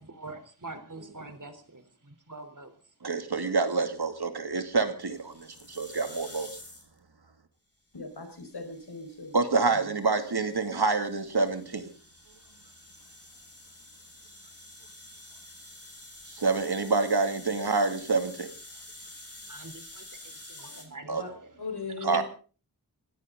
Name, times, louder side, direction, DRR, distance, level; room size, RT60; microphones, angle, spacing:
voice 1, 0.0-2.7 19.5-21.6 22.0-22.2, right 2 dB, 55° right, 9 dB, 3.8 m, -44 dB
voice 2, 3.0-6.5 9.3-11.9 16.3-18.5 21.1-21.2 22.0-22.2, right 4 dB, 80° right, 7 dB, 2.6 m, -27 dB
sound 1, 5.0-7.0 8.0-20.8, left 2 dB, 40° left, 6.2 m, -49 dB
voice 3, 7.9-9.3 9.7-9.9 21.2-21.3 21.6-22.2, left 4 dB, 90° left, 7 dB, 5.2 m, -39 dB
22.0 x 16.5 x 3.9 m, 0.37 s
wide cardioid pair, 55°, 38 cm